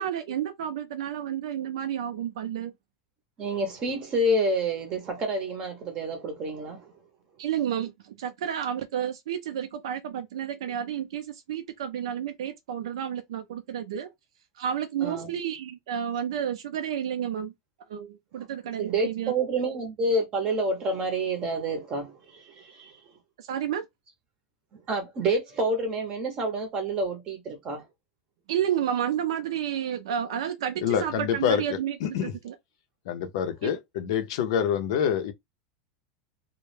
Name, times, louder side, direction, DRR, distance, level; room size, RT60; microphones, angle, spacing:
voice 1, 0.0-2.7 7.4-14.1 14.6-17.5 17.9-19.3 23.4-23.9 28.5-32.5 33.6-33.7, right 9 dB, 85° right, 0.4 m, -31 dB
voice 2, 3.4-6.9 15.0-15.3 18.4-18.5 18.8-23.1 24.9-27.8, right 2 dB, 30° right, 0.6 m, -28 dB
voice 3, 30.8-31.6 32.0-32.3 33.1-35.3, left 8 dB, 65° left, 0.5 m, -26 dB
2.2 x 2.0 x 3.1 m
supercardioid pair, 155°, 3 cm